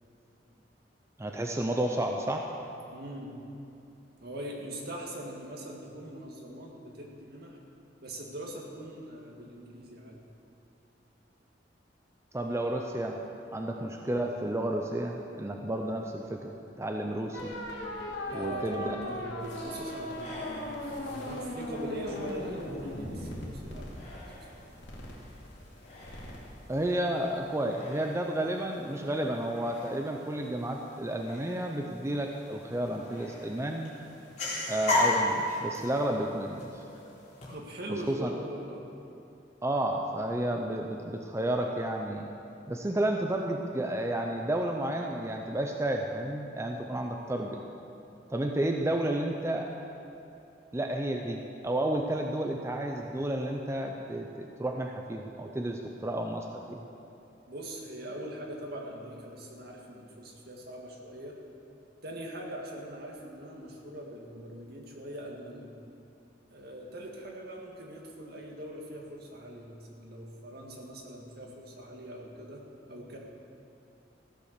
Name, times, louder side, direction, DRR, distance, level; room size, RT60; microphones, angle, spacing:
voice 1, 1.2-2.5 12.3-13.2 13.5-17.6 18.3-19.0 26.7-33.9 34.7-36.8 38.1-38.3 39.6-42.3 42.7-47.6 48.3-49.7 50.7-56.8, right 1 dB, 15° right, 2 dB, 0.6 m, -31 dB
voice 2, 2.9-3.4 4.2-7.6 8.0-10.2 18.3-24.7 37.5-38.8 57.5-61.4 62.0-65.7 66.5-73.2, right 1 dB, 60° right, 0 dB, 1.9 m, -42 dB
sound 1, 17.3-26.5, left 1 dB, 70° left, 2.5 m, -38 dB
sound 2, 19.4-37.5, left 2 dB, 40° left, 3.4 m, -38 dB
15.0 x 8.1 x 6.6 m, 2.8 s
head